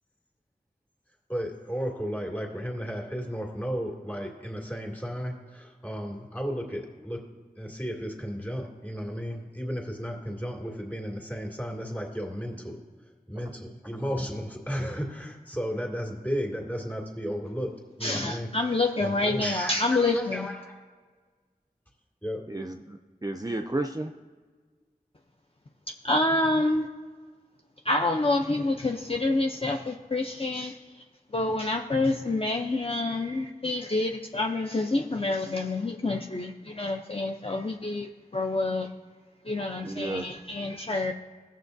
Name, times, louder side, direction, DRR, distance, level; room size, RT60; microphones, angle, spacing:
voice 1, 1.3-7.2 7.6-12.8 13.3-17.7 18.0-20.8 22.2-22.4, equal, 10° left, 0 dB, 2.3 m, -34 dB
voice 2, 18.0-20.5 26.0-26.9 27.8-30.8 31.3-38.9 39.5-41.1, left 2 dB, 35° left, 2 dB, 0.6 m, -27 dB
voice 3, 22.5-24.1 39.8-40.3, right 2 dB, 25° right, 5 dB, 0.5 m, -32 dB
17.0 x 7.4 x 2.7 m, 1.5 s
wide cardioid pair, 45°, 16 cm